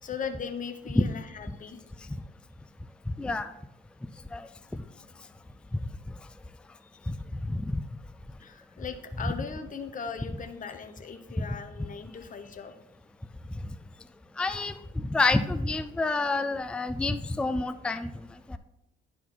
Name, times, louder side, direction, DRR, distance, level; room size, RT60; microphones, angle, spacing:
voice 1, 0.0-1.8 4.7-4.8 6.8-7.1 8.4-12.7, left 6 dB, 40° left, 8 dB, 0.9 m, -39 dB
voice 2, 3.1-3.5 4.3-4.8 5.7-5.8 7.1-7.2 7.5-7.8 11.4-11.5 14.4-18.1 18.5-18.6, left 2 dB, 5° left, 10 dB, 0.4 m, -28 dB
9.9 x 4.6 x 3.9 m, 0.84 s
cardioid pair, 90°, 20 cm